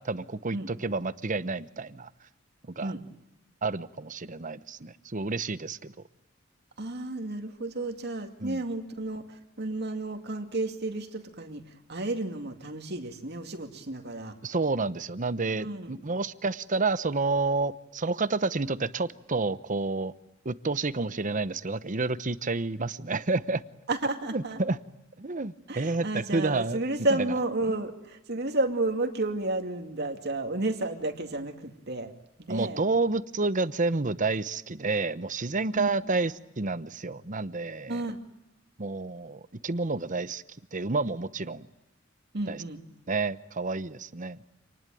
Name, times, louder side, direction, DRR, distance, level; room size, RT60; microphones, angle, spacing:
voice 1, 0.0-2.1 2.8-2.9 3.6-5.9 8.4-8.6 14.4-20.1 20.4-23.6 24.3-24.8 25.2-26.8 27.7-27.8 32.5-38.0 38.8-40.4 40.7-41.7 42.5-42.6 43.1-44.4, right 3 dB, 40° right, 14 dB, 0.9 m, -29 dB
voice 2, 6.8-11.6 11.9-14.3 15.6-15.9 23.9-24.6 25.7-32.1 32.4-32.8 35.7-35.9 37.9-38.2 42.3-42.8, right 2 dB, 55° right, 5 dB, 2.4 m, -32 dB
27.5 x 19.5 x 9.2 m, 0.89 s
head